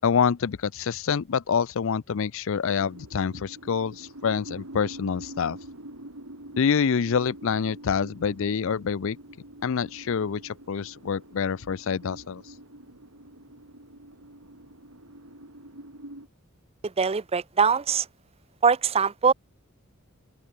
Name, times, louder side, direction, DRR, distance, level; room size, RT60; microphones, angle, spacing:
voice 1, 0.0-5.6 6.6-9.2 9.6-12.4, left 6 dB, 60° left, 0.5 m, -26 dB
sound 1, 2.6-16.3, right 1 dB, 80° right, 5.7 m, -46 dB
voice 2, 16.8-18.1 18.6-19.3, right 5 dB, 25° right, 0.6 m, -22 dB
open air
head